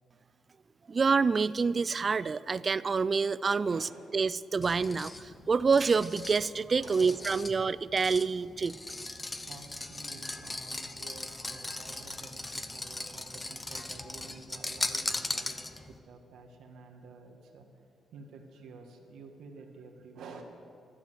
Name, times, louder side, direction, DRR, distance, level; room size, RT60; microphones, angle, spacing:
voice 1, 0.9-8.8, right 5 dB, 35° right, 18 dB, 0.4 m, -27 dB
voice 2, 3.6-4.3 6.8-7.4 9.4-17.7 18.1-20.4, right 4 dB, 85° right, 2 dB, 1.9 m, -50 dB
sound 1, 4.6-16.0, left 2 dB, 20° left, 0.8 m, -39 dB
12.5 x 12.0 x 7.8 m, 2.4 s
cardioid pair, 105°, 0 cm